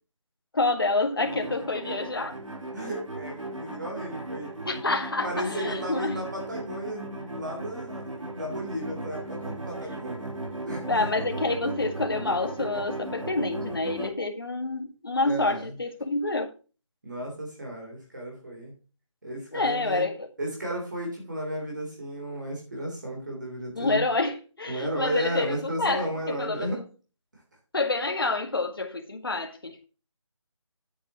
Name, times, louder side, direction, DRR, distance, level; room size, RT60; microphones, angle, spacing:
voice 1, 0.5-2.4 4.6-6.2 10.9-16.5 19.5-20.3 23.7-26.8 27.7-29.8, left 2 dB, 45° left, 1.8 m, -28 dB
sound 1, 1.2-14.1, right 2 dB, 85° right, 4.0 m, -37 dB
voice 2, 2.7-4.6 5.2-10.3 10.6-11.1 15.2-15.7 17.0-18.7 19.2-20.0 20.4-24.0 24.7-26.8, right 1 dB, 35° right, 3.4 m, -34 dB
9.9 x 8.7 x 3.0 m
figure-of-eight pair, 180°, 16 cm